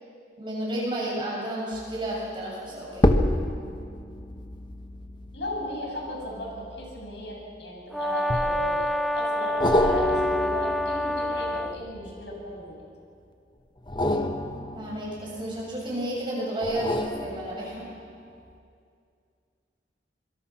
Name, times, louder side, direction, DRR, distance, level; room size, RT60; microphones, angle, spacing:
voice 1, 0.4-3.1 14.7-17.9, right 1 dB, 25° right, -4 dB, 7.6 m, -31 dB
sound 1, 1.7-2.1 2.9-7.6 8.3-8.9 9.6-12.6 13.8-15.9 16.6-18.0 18.5-18.6, left 1 dB, 25° left, 1.0 m, -29 dB
voice 2, 5.3-12.8, left 1 dB, 75° left, -2 dB, 7.8 m, -35 dB
Brass instrument, 7.9-11.8, left 1 dB, ahead, 0.5 m, -27 dB
26.0 x 23.5 x 6.1 m, 2.4 s
head